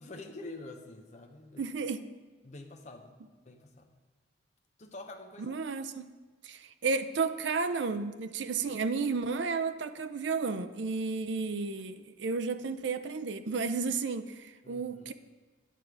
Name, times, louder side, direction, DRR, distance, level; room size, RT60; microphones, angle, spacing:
voice 1, 0.0-1.6 2.4-3.9 4.8-5.5 14.6-15.1, left 2 dB, 40° left, 3 dB, 0.7 m, -47 dB
voice 2, 1.6-2.0 5.4-6.1 6.4-15.1, right 4 dB, 65° right, 10 dB, 0.5 m, -32 dB
10.0 x 6.3 x 4.7 m, 1.3 s
head